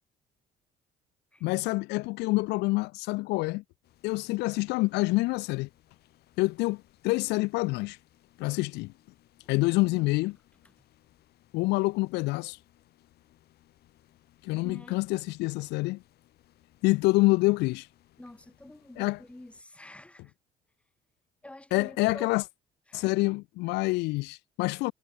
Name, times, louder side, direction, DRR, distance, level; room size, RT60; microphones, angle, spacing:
voice 1, 1.4-3.6 4.0-5.7 6.4-8.0 8.4-8.9 9.5-10.3 11.5-12.6 14.4-16.0 16.8-17.9 19.0-19.2 21.7-22.4 22.9-24.9, left 22 dB, 85° left, 0.5 m, -27 dB
sound 1, 3.8-19.6, left 14 dB, 70° left, 3.2 m, -64 dB
voice 2, 14.6-15.0 18.2-20.3 21.4-22.3 22.9-23.1, left 1 dB, 5° left, 2.2 m, -48 dB
cardioid pair, 110°, 17 cm